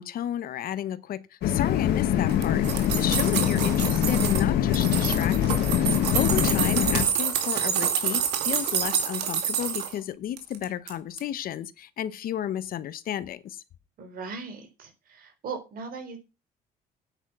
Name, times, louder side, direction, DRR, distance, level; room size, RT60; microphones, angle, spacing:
voice 1, 0.0-13.6, left 10 dB, 60° left, 1.0 m, -33 dB
sound 1, 1.4-7.0, left 10 dB, 75° left, 1.6 m, -24 dB
sound 2, 2.3-4.4 4.7-9.9 10.4-10.9 11.2-11.3, right 9 dB, 80° right, 2.5 m, -28 dB
voice 2, 14.0-16.2, right 5 dB, 60° right, 4.2 m, -38 dB
9.1 x 9.0 x 6.0 m
cardioid pair, 110°, 17 cm